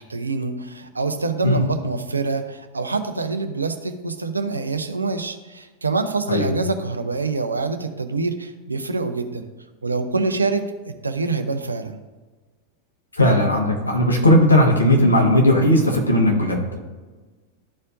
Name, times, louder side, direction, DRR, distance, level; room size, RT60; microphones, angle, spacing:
voice 1, 0.0-9.5 9.8-12.0, right 3 dB, 80° right, 8 dB, 0.6 m, -25 dB
voice 2, 13.2-16.6, left 1 dB, 80° left, 0 dB, 1.4 m, -17 dB
12.5 x 4.3 x 2.6 m, 1.3 s
figure-of-eight pair, 90°, 0 cm